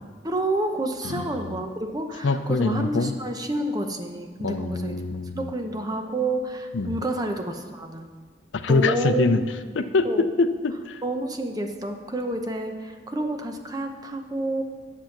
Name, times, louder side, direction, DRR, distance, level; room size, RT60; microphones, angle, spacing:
voice 1, 0.2-4.9 5.3-8.1 8.7-9.4 9.6-10.3 11.0-14.6, right 1 dB, 20° right, 4 dB, 0.8 m, -29 dB
voice 2, 2.2-3.1 4.4-5.5 6.7-7.0 8.5-9.4 9.7-11.0, left 3 dB, 85° left, 10 dB, 0.5 m, -24 dB
10.5 x 7.0 x 5.9 m, 1.5 s
head